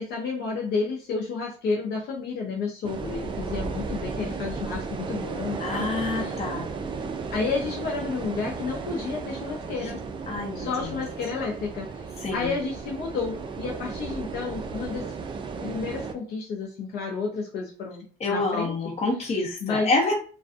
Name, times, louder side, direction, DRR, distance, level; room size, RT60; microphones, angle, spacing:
voice 1, 0.0-5.9 6.1-6.3 7.3-10.0 10.5-12.1 12.3-15.0 15.6-18.9 19.6-19.9, left 4 dB, 70° left, -1 dB, 0.6 m, -31 dB
sound 1, 2.8-16.1, right 4 dB, 30° right, 0.4 m, -34 dB
voice 2, 5.6-6.7 10.3-11.0 12.2-12.5 18.2-20.1, left 3 dB, 40° left, 0 dB, 0.9 m, -27 dB
2.5 x 2.2 x 2.4 m, 0.39 s
cardioid pair, 110°, 17 cm